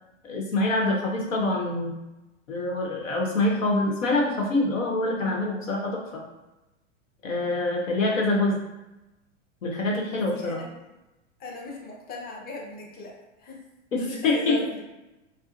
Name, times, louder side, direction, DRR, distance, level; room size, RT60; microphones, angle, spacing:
voice 1, 0.2-1.9 2.5-6.0 7.2-8.6 9.6-10.6 13.9-14.6, left 2 dB, 85° left, -1 dB, 1.0 m, -25 dB
voice 2, 10.1-10.7 11.4-13.6 14.1-14.8, left 1 dB, 25° left, -1 dB, 0.8 m, -38 dB
4.8 x 2.1 x 2.5 m, 1.0 s
hypercardioid pair, 105°, 38 cm